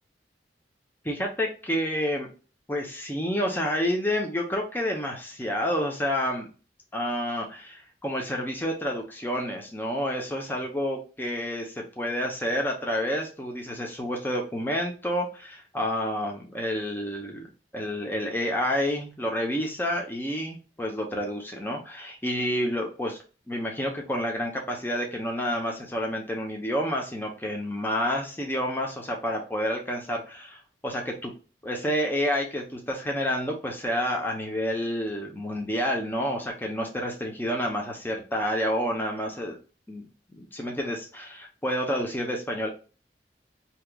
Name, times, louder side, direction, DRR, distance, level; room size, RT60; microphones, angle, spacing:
voice 1, 1.0-2.3 2.7-6.5 6.9-17.4 17.7-23.2 23.5-31.3 31.6-39.6 39.9-40.1 40.3-42.7, equal, 10° left, 1 dB, 0.7 m, -29 dB
4.7 x 2.9 x 2.2 m, 0.34 s
head